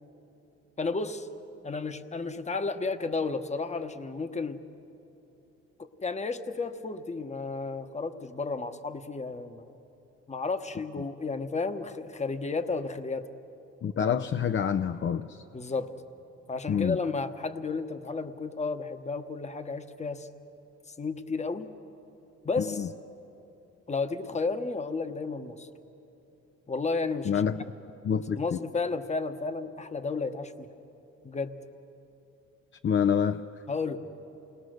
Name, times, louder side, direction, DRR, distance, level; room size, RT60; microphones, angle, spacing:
voice 1, 0.8-1.3 1.6-4.6 5.8-9.8 10.3-13.3 15.5-15.9 16.5-20.3 20.9-21.7 22.4-22.9 23.9-25.7 26.7-27.4 28.4-30.7 31.2-31.5 33.7-34.0, left 4 dB, 25° left, 8 dB, 1.1 m, -32 dB
voice 2, 13.8-15.4 16.7-17.0 22.6-22.9 27.2-27.6 28.0-28.6 32.8-33.4, left 7 dB, 40° left, 9 dB, 0.6 m, -27 dB
28.0 x 20.5 x 6.5 m, 3.0 s
cardioid pair, 90°, 30 cm